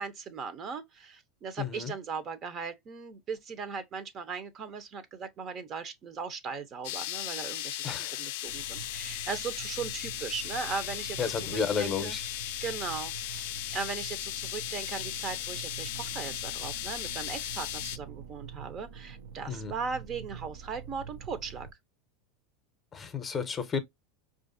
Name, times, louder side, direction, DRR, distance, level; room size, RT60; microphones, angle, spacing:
voice 1, 0.0-12.2 12.6-13.5 13.7-21.7, right 5 dB, 40° right, 0.7 m, -38 dB
voice 2, 1.6-1.9 7.8-8.1 11.2-12.2 19.5-19.7 22.9-23.8, left 6 dB, 25° left, 0.7 m, -32 dB
sound 1, 6.8-18.0, left 14 dB, 70° left, 0.4 m, -37 dB
sound 2, 8.5-21.7, right 7 dB, 80° right, 0.7 m, -46 dB
4.7 x 2.5 x 2.5 m
hypercardioid pair, 100°, 0 cm